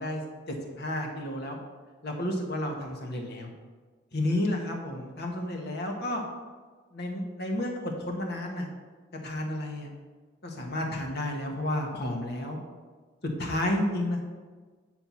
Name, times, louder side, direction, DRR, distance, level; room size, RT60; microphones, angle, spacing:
voice 1, 0.0-1.6 2.0-3.5 4.1-6.2 6.9-8.7 9.2-9.9 10.4-12.6 13.2-14.2, left 1 dB, 55° left, 2 dB, 1.4 m, -31 dB
8.9 x 4.5 x 5.7 m, 1.4 s
head